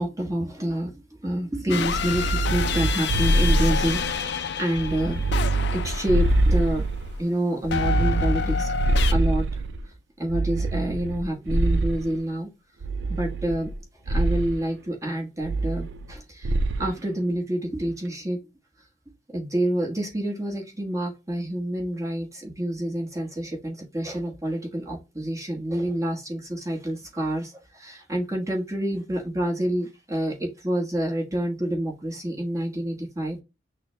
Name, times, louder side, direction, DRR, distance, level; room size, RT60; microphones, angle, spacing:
voice 1, 0.0-4.0 4.3-5.2 5.5-6.8 7.2-8.7 9.1-9.6 10.2-12.5 13.1-13.7 14.1-16.5 16.8-18.4 19.3-33.4, right 1 dB, 15° right, -1 dB, 1.2 m, -28 dB
sound 1, 1.7-6.8 7.7-9.1, left 5 dB, 55° left, 0.4 m, -28 dB
sound 2, 1.8-4.3 4.7-7.2 7.6-9.8 10.3-12.2 12.8-13.8 14.1-14.6 15.4-16.1 16.4-16.9, right 2 dB, 60° right, 0.5 m, -24 dB
6.0 x 2.2 x 2.9 m, 0.25 s
head